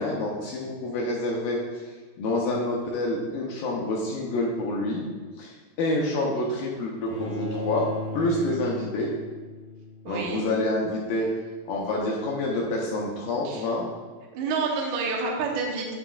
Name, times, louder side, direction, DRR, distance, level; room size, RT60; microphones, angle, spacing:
voice 1, 0.0-1.6 2.2-5.0 5.4-7.9 8.1-9.1 10.1-11.3 11.7-13.9, left 2 dB, 80° left, -3 dB, 2.2 m, -27 dB
Bowed string instrument, 7.1-10.2, left 2 dB, 65° left, 1.9 m, -35 dB
voice 2, 8.1-8.6 10.0-10.4 13.4-13.6 14.3-15.9, right 4 dB, 90° right, -1 dB, 1.6 m, -29 dB
7.6 x 5.8 x 2.4 m, 1.4 s
omnidirectional pair, 4.8 m